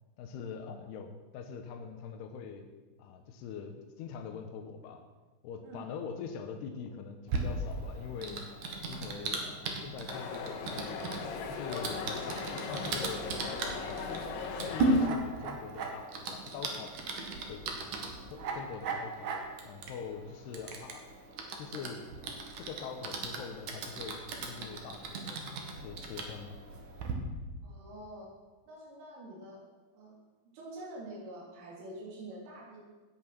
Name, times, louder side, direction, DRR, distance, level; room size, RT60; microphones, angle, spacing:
voice 1, 0.2-2.6 3.0-5.0 5.4-8.4 8.9-11.1 11.5-13.3 13.7-16.9 17.5-17.6 18.3-19.3 19.7-21.1 21.6-22.0 22.6-25.4 25.8-26.6, left 6 dB, 75° left, 5 dB, 2.6 m, -43 dB
Typing, 7.3-27.1, right 3 dB, 60° right, 2.3 m, -37 dB
sound 1, 10.1-15.1, left 5 dB, 90° left, 4.2 m, -38 dB
voice 2, 27.6-28.3 28.7-29.6 29.9-30.2 30.5-32.8, right 1 dB, 75° right, -4 dB, 6.1 m, -46 dB
16.5 x 10.0 x 6.1 m, 1.3 s
omnidirectional pair, 5.8 m